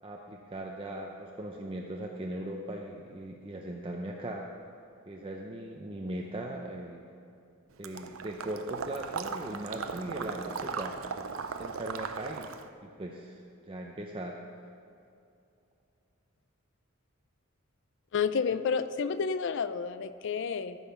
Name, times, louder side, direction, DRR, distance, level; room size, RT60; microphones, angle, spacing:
voice 1, 0.0-4.5 5.1-7.1 7.8-11.0 11.6-12.5 12.8-14.4, right 1 dB, 25° right, 0 dB, 0.6 m, -39 dB
Water / Liquid, 7.8-12.7, right 5 dB, 80° right, 0.6 m, -38 dB
voice 2, 18.1-20.8, left 6 dB, 60° left, 12 dB, 0.4 m, -30 dB
14.0 x 5.6 x 5.9 m, 2.5 s
head